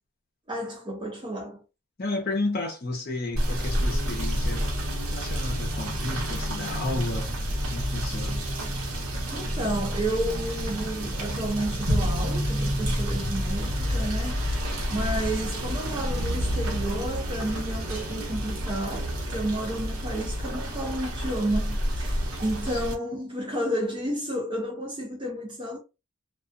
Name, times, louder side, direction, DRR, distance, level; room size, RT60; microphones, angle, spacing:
voice 1, 0.5-1.6 9.3-14.5 14.9-25.8, right 1 dB, 25° right, 0.5 m, -31 dB
voice 2, 2.0-4.6 5.1-7.3 7.7-8.4 22.7-22.8, left 2 dB, 45° left, 0.7 m, -32 dB
Rain / Motor vehicle (road), 3.3-22.9, equal, 75° right, 0.8 m, -29 dB
2.3 x 2.2 x 2.4 m
head